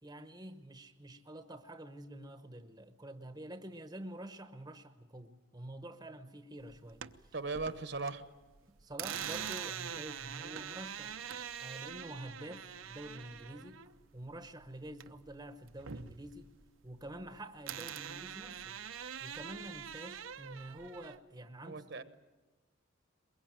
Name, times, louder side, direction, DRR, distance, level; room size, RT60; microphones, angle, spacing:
voice 1, 0.0-7.3 8.8-11.2 11.6-13.8 14.1-16.5 16.8-18.8 19.2-22.0, right 1 dB, 20° right, 9 dB, 0.9 m, -48 dB
sound 1, 6.7-8.1 8.4-15.3 15.6-17.3 17.7-21.2, right 8 dB, 70° right, 0.8 m, -44 dB
voice 2, 7.3-8.3 21.6-22.0, right 3 dB, 55° right, 11 dB, 1.1 m, -38 dB
22.5 x 22.0 x 9.2 m, 1.2 s
head